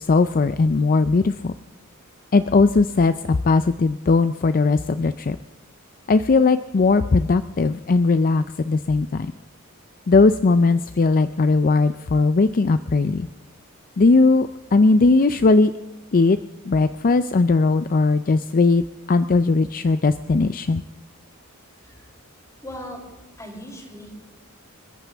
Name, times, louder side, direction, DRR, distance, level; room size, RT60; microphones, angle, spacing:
voice 1, 0.0-1.5 2.3-3.1 3.4-5.4 6.1-9.3 10.1-13.3 14.0-15.7 16.1-16.4 16.7-18.8 19.1-20.8, left 3 dB, 40° left, 12 dB, 0.5 m, -18 dB
voice 2, 22.6-23.0 23.4-24.2, equal, 15° left, -1 dB, 6.2 m, -38 dB
29.0 x 14.0 x 3.5 m, 1.1 s
head